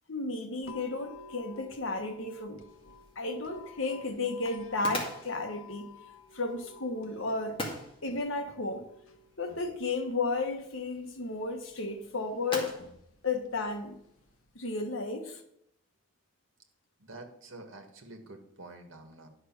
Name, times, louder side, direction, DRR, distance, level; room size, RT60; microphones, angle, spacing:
voice 1, 0.1-2.6 3.1-5.9 6.3-7.6 8.0-8.9 9.4-12.9 13.2-13.9 14.5-15.4, left 3 dB, 70° left, 4 dB, 1.5 m, -33 dB
sound 1, 0.6-14.6, left 4 dB, 85° left, 1.1 m, -54 dB
sound 2, 2.7-14.4, left 1 dB, 25° left, 2.2 m, -45 dB
voice 2, 17.0-19.3, right 2 dB, 70° right, 4 dB, 1.8 m, -48 dB
11.0 x 6.5 x 6.1 m, 0.74 s
head